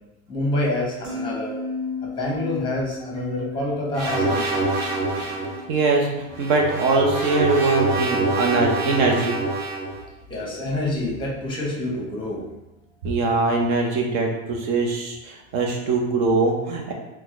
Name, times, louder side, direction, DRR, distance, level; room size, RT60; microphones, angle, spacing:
voice 1, 0.3-1.6 2.0-4.6 10.3-12.4, left 1 dB, 10° left, -2 dB, 0.9 m, -27 dB
sound 1, 1.0-7.3 7.7-8.0, left 3 dB, 30° right, 1.3 m, -35 dB
sound 2, 3.9-5.6 6.3-10.0, right 2 dB, 80° right, 1.1 m, -25 dB
voice 2, 5.7-9.4 13.0-16.9, right 3 dB, 55° right, 1 dB, 0.9 m, -22 dB
4.0 x 2.3 x 2.4 m, 0.99 s
supercardioid pair, 120°, 42 cm